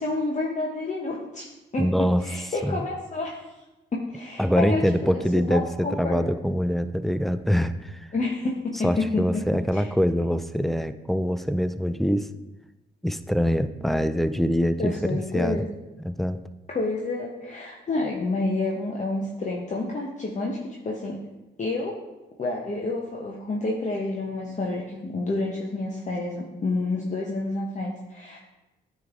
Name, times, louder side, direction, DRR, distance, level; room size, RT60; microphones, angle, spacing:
voice 1, 0.0-3.4 3.9-5.1 5.5-6.3 8.1-9.4 9.7-9.9 14.8-15.6 16.7-21.2 21.6-22.0 22.4-28.4, left 2 dB, 35° left, -2 dB, 1.0 m, -29 dB
voice 2, 1.8-2.2 2.6-2.9 4.4-8.1 8.8-12.3 13.0-15.6 16.0-16.4, equal, ahead, 12 dB, 0.4 m, -24 dB
9.1 x 3.3 x 3.7 m, 1.0 s
supercardioid pair, 50°, 21 cm